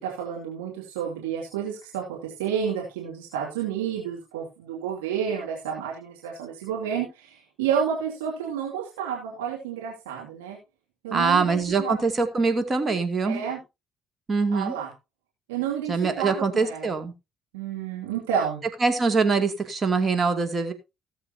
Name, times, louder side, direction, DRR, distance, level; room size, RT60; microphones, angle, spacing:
voice 1, 0.0-10.6 11.0-12.0 13.2-13.6 14.5-14.9 15.5-16.9 17.5-18.6, right 8 dB, 75° right, -2 dB, 2.5 m, -30 dB
voice 2, 11.1-13.4 14.3-14.7 15.9-17.1 18.8-20.7, right 4 dB, 35° right, 7 dB, 2.5 m, -23 dB
18.0 x 7.7 x 2.8 m, 0.25 s
figure-of-eight pair, 50°, 0 cm